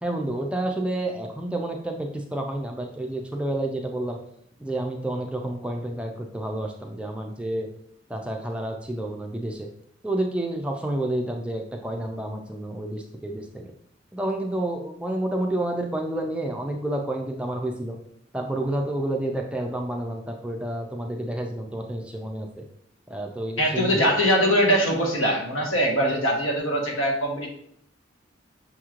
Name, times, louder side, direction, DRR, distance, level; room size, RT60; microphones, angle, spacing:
voice 1, 0.0-4.2 4.6-7.7 8.1-9.7 10.0-13.7 14.1-18.0 18.3-22.6 23.1-24.0, right 1 dB, 5° right, 2 dB, 0.3 m, -29 dB
voice 2, 23.6-27.5, equal, 90° left, 0 dB, 1.0 m, -22 dB
6.2 x 3.0 x 2.4 m, 0.69 s
head